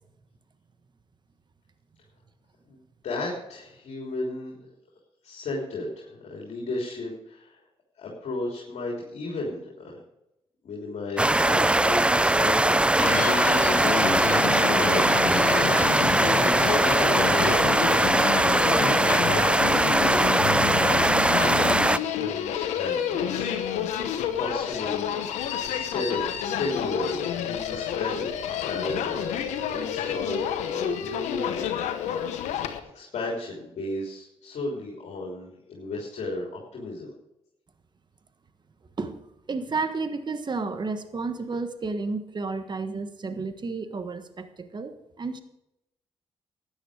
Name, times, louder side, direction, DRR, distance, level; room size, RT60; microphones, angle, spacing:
voice 1, 2.7-4.5 5.2-7.6 8.0-9.9 10.6-13.3 13.6-16.4 16.7-18.3 18.6-20.8 21.3-21.9 22.2-25.2 25.6-28.3 28.6-29.4 29.7-32.2 32.5-37.1, left 2 dB, 70° left, -2 dB, 3.4 m, -34 dB
sound 1, 11.2-22.0, right 1 dB, 10° right, 0.5 m, -21 dB
Human voice, 13.0-32.8, left 9 dB, 90° left, 1.0 m, -29 dB
voice 2, 39.0-45.4, right 3 dB, 40° right, 9 dB, 1.4 m, -32 dB
12.5 x 10.0 x 5.0 m, 0.85 s
supercardioid pair, 60°, 12 cm